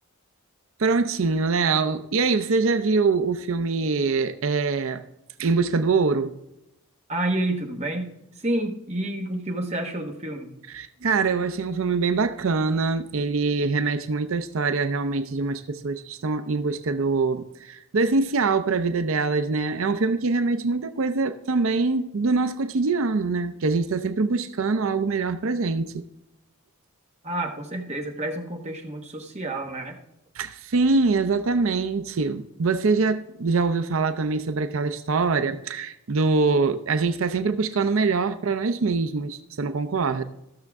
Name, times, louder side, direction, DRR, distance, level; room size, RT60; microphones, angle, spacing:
voice 1, 0.8-5.0 5.4-6.4 10.7-26.0 30.4-40.2, right 4 dB, 65° right, 0.5 m, -24 dB
voice 2, 7.1-10.5 27.2-30.0, right 1 dB, 30° right, 1.3 m, -29 dB
14.5 x 6.5 x 3.5 m
head